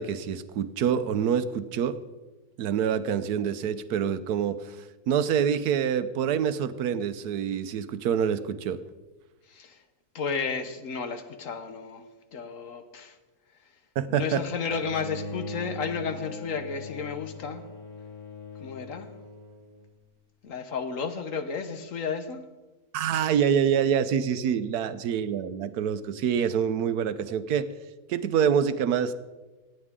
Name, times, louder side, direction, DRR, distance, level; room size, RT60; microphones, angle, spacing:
voice 1, 0.0-2.0 2.6-4.8 5.1-8.8 14.0-14.4 22.9-27.7 28.1-29.1, right 8 dB, 85° right, 12 dB, 1.3 m, -26 dB
voice 2, 9.5-9.8 10.1-13.2 14.1-17.6 18.6-19.1 20.4-22.5, left 5 dB, 60° left, 8 dB, 1.4 m, -33 dB
Bowed string instrument, 14.6-19.9, left 2 dB, 35° left, 3.2 m, -40 dB
25.0 x 9.3 x 3.7 m, 1.2 s
omnidirectional pair, 1.6 m